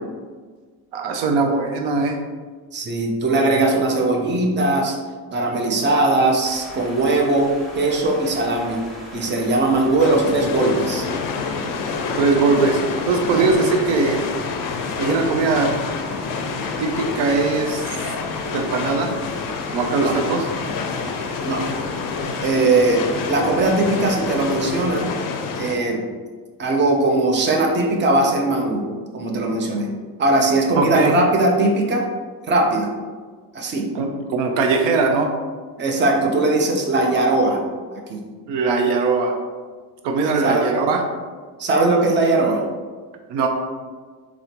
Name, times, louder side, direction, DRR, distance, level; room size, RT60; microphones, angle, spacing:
voice 1, 0.9-2.2 12.2-12.8 13.1-14.2 15.0-15.7 16.8-17.9 18.5-19.2 19.7-20.5 30.8-31.1 33.9-35.3 38.5-39.4 40.0-41.0 43.3-43.5, right 4 dB, 70° right, 3 dB, 0.6 m, -20 dB
voice 2, 2.7-5.0 5.3-8.8 9.1-11.0 20.0-20.1 21.4-21.6 22.4-25.1 25.6-26.0 26.6-28.9 29.1-29.9 30.2-32.0 32.5-32.9 33.5-33.9 35.8-37.6 37.9-38.2 40.4-40.7 41.6-42.6, right 2 dB, 25° right, 1 dB, 0.6 m, -19 dB
sound 1, 6.4-25.1, equal, ahead, 0.9 m, -39 dB
sound 2, 10.0-25.8, left 5 dB, 50° left, 0.5 m, -28 dB
4.8 x 2.0 x 2.9 m, 1.5 s
supercardioid pair, 85°, 43 cm